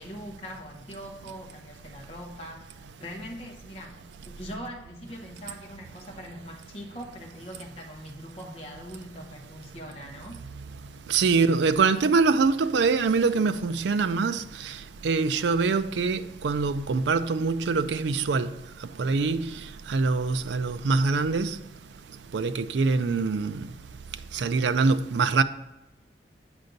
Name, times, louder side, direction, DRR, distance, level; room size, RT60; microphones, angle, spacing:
voice 1, 0.0-4.0 4.2-10.4, equal, 30° left, 0.9 m, -41 dB
voice 2, 11.1-14.8 15.0-18.5 19.0-19.6 19.9-21.6 22.3-23.7 24.3-25.4, right 4 dB, 75° right, 0.4 m, -24 dB
8.1 x 5.3 x 3.9 m
head